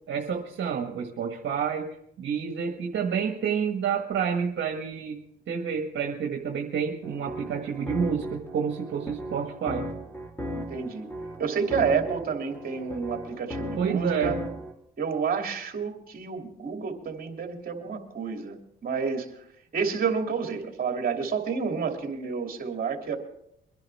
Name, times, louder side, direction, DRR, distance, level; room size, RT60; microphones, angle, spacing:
voice 1, 0.1-1.9 2.2-5.2 5.5-9.8 13.8-14.3, right 7 dB, 65° right, 2 dB, 1.7 m, -29 dB
sound 1, 7.0-14.7, equal, 10° left, 3.5 m, -37 dB
voice 2, 10.5-11.1 11.4-14.4 15.0-19.3 19.7-23.2, right 6 dB, 45° right, 2 dB, 2.9 m, -29 dB
23.5 x 10.5 x 3.6 m, 0.74 s
cardioid pair, 90°, 20 cm